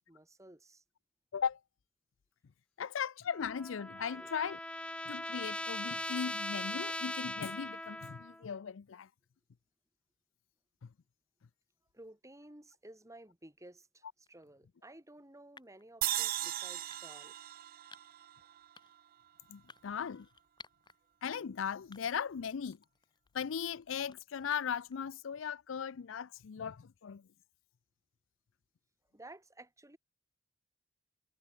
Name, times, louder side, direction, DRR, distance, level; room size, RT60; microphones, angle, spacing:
voice 1, 0.1-0.8 4.1-4.3 11.9-17.4 29.1-30.0, right 1 dB, 15° right, 4.0 m, -55 dB
voice 2, 2.8-4.6 5.1-9.1 10.8-10.9 19.5-20.3 21.2-22.8 23.3-27.3, left 7 dB, 70° left, 0.5 m, -38 dB
Trumpet, 3.3-8.4, left 1 dB, 5° left, 0.9 m, -40 dB
sound 1, 14.3-14.5 15.6-15.9 16.9-17.3 17.9-18.2 18.7-19.1 19.7-21.0 21.4-21.5 21.9-22.4 22.7-24.9, left 4 dB, 25° left, 7.4 m, -58 dB
sound 2, 16.0-19.3, right 14 dB, 45° right, 0.4 m, -38 dB
head